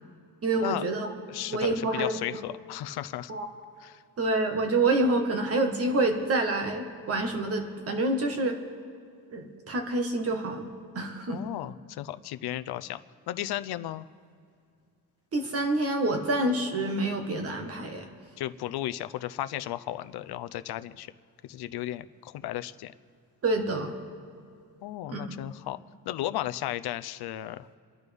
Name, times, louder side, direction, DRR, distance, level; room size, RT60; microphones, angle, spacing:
voice 1, 0.4-1.1 1.5-2.1 3.3-3.5 4.2-8.6 9.3-10.7 10.9-11.4 15.3-18.1 23.4-24.0 25.1-25.4, right 2 dB, 40° right, 4 dB, 1.6 m, -27 dB
voice 2, 1.3-3.3 3.8-4.0 11.3-13.0 13.3-14.0 18.4-21.1 21.4-22.9 24.8-25.8 26.1-27.7, left 13 dB, 80° left, 12 dB, 0.6 m, -34 dB
29.0 x 11.0 x 3.5 m, 2.4 s
cardioid pair, 160°, 38 cm